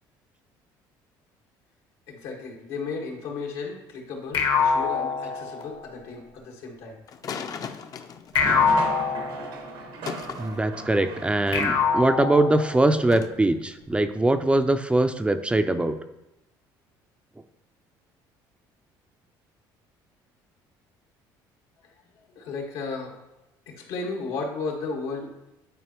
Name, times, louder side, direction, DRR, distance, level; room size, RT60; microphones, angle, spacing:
voice 1, 2.1-7.0 21.8-21.9 22.3-23.1 23.7-25.3, left 4 dB, 85° left, 0 dB, 1.6 m, -34 dB
sound 1, 4.3-6.0 8.3-9.9 11.5-13.0, left 5 dB, 65° left, 1.1 m, -25 dB
sound 2, 7.1-9.1 10.1-10.5 13.1-13.3, left 6 dB, 45° left, 0.5 m, -36 dB
sound 3, 8.3-12.3, right 4 dB, 80° right, 1.1 m, -36 dB
voice 2, 10.4-15.9, right 2 dB, 15° right, 9 dB, 0.4 m, -22 dB
10.0 x 4.3 x 2.9 m, 0.92 s
cardioid pair, 100°, 9 cm